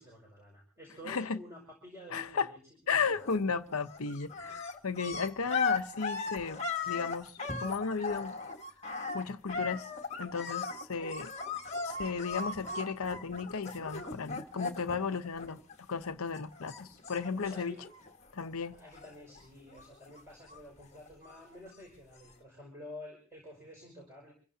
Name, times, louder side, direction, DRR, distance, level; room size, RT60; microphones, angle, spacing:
voice 1, 0.0-2.6 3.1-3.2 16.9-17.9 18.7-24.3, left 1 dB, 15° right, 5.4 m, -50 dB
voice 2, 1.0-1.4 2.1-2.5 2.9-7.3 7.6-8.4 9.1-9.9 10.2-11.3 11.8-17.8 18.3-18.8, left 5 dB, 80° left, 0.8 m, -34 dB
sound 1, 3.0-3.5 3.8-16.1 16.3-18.5 18.7-19.4 19.7-21.5 22.2-22.3, left 4 dB, 30° left, 1.5 m, -38 dB
26.5 x 16.0 x 2.8 m
head